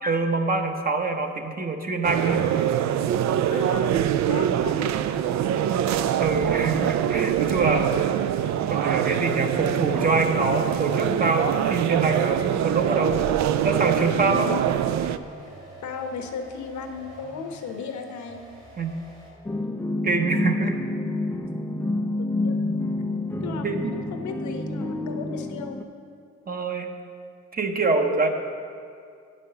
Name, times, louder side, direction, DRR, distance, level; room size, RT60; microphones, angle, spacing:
voice 1, 0.0-2.4 6.2-8.0 8.6-13.2 13.6-14.5 18.8-18.9 20.0-20.8 23.6-24.0 26.5-27.0 27.5-28.3, right 3 dB, 30° right, 5 dB, 0.9 m, -25 dB
sound 1, 2.0-15.2, right 10 dB, 65° right, 0.4 m, -24 dB
voice 2, 3.5-5.8 14.2-14.7 15.8-18.4 22.4-22.5 23.4-25.8, left 5 dB, 70° left, 6 dB, 1.0 m, -36 dB
sound 2, 4.0-19.5, right 1 dB, 85° right, 2.6 m, -46 dB
sound 3, 19.4-25.8, left 2 dB, 5° left, 0.4 m, -28 dB
9.5 x 5.4 x 6.7 m, 2.3 s
cardioid pair, 90°, 30 cm